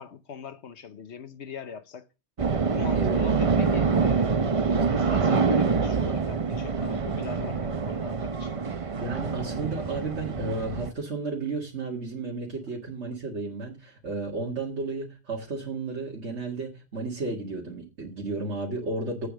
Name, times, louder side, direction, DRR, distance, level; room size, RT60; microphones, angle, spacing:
voice 1, 0.0-2.1 2.7-8.5, left 7 dB, 75° left, 1.2 m, -41 dB
sound 1, 2.4-10.9, right 5 dB, 35° right, 0.7 m, -25 dB
voice 2, 4.8-5.4 9.0-19.3, right 3 dB, 85° right, 2.3 m, -33 dB
8.4 x 6.7 x 6.3 m
omnidirectional pair, 1.2 m